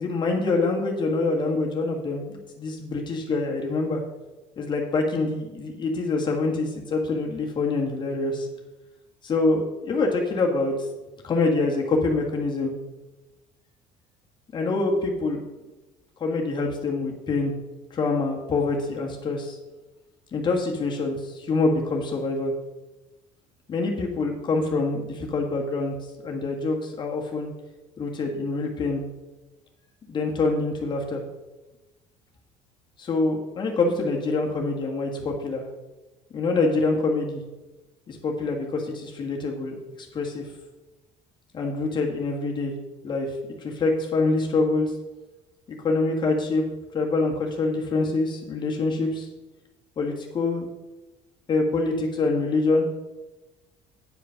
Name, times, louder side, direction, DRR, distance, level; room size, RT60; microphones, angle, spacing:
voice 1, 0.0-4.0 4.6-8.5 9.2-10.9 11.2-12.7 14.5-15.4 16.2-17.5 17.9-19.6 20.3-22.5 23.7-25.9 26.2-27.5 28.0-29.0 30.1-31.2 33.0-35.6 36.3-37.4 38.1-39.7 40.1-40.5 41.5-42.7 43.0-43.3 43.6-44.9 45.7-46.6 46.9-49.3 50.0-50.7 51.5-52.9, left 3 dB, 35° left, 0 dB, 1.6 m, -25 dB
9.3 x 5.1 x 5.7 m, 1.1 s
cardioid pair, 125°, 14 cm